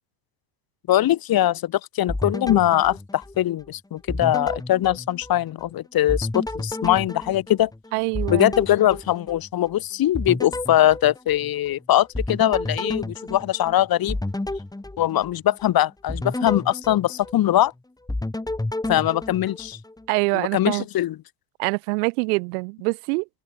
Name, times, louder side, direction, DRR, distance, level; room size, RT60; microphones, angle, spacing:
voice 1, 0.9-7.7 8.3-14.2 15.0-17.7 18.9-19.8 20.5-21.1, left 13 dB, 45° left, 6.2 m, -21 dB
sound 1, 2.1-3.7 4.1-5.7 6.1-9.7 10.2-11.7 12.1-15.6 16.1-17.7 18.1-20.1, left 2 dB, 10° left, 7.8 m, -31 dB
voice 2, 7.9-8.5 20.1-20.9 21.6-23.3, right 32 dB, 70° right, 3.5 m, -24 dB
open air
hypercardioid pair, 90°, 48 cm